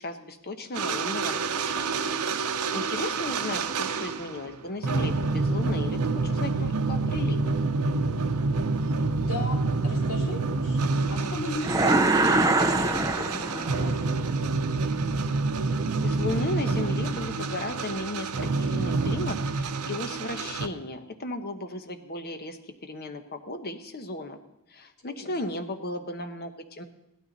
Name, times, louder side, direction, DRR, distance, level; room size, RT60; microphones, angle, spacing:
voice 1, 0.0-2.1 2.4-7.5 16.0-24.4 24.7-26.8, left 2 dB, 45° left, 7 dB, 1.0 m, -35 dB
sound 1, 0.7-4.5 4.8-20.7, right 3 dB, 85° right, 0.7 m, -28 dB
voice 2, 3.2-3.6 9.1-10.8 11.1-14.3 25.0-25.3, left 2 dB, 75° left, -3 dB, 3.1 m, -38 dB
sound 2, 11.6-14.0, right 2 dB, 15° right, 0.6 m, -23 dB
16.0 x 12.0 x 4.0 m, 0.86 s
head